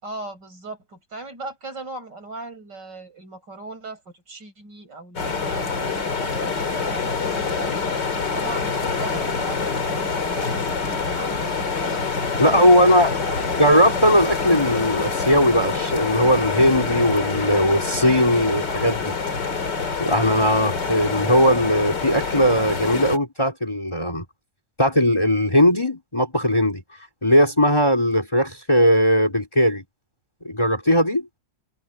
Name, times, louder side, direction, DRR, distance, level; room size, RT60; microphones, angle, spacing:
voice 1, 0.0-7.9 8.3-12.0 12.4-13.5, right 2 dB, 65° right, 8.4 m, -38 dB
sound 1, 5.2-23.2, left 4 dB, 70° left, 3.3 m, -26 dB
voice 2, 12.4-13.1 13.6-19.2 20.0-24.2 24.8-26.8 27.2-29.8 30.4-31.3, equal, 15° left, 3.8 m, -19 dB
omnidirectional pair, 2.0 m